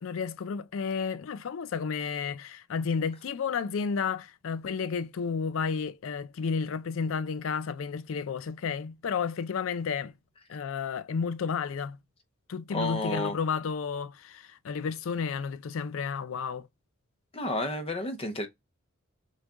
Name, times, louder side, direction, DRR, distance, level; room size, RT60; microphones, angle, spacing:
voice 1, 0.0-10.1 10.5-12.0 12.5-16.7, left 5 dB, 70° left, 0.4 m, -32 dB
voice 2, 12.7-13.4 17.3-18.5, left 1 dB, 30° left, 0.6 m, -31 dB
6.4 x 2.2 x 3.6 m
head